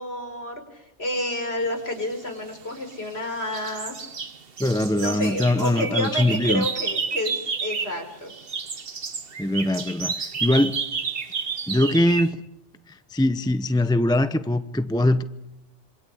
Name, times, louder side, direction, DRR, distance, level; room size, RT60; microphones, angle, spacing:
voice 1, 0.0-4.0 4.9-8.3, left 1 dB, 50° left, 5.9 m, -30 dB
sound 1, 2.4-3.2 3.5-8.0 8.3-12.3, right 5 dB, 50° right, 1.5 m, -30 dB
voice 2, 4.6-6.6 9.4-10.8 11.7-12.4 12.9-15.2, left 1 dB, 5° left, 0.7 m, -22 dB
27.0 x 24.5 x 8.5 m
omnidirectional pair, 1.3 m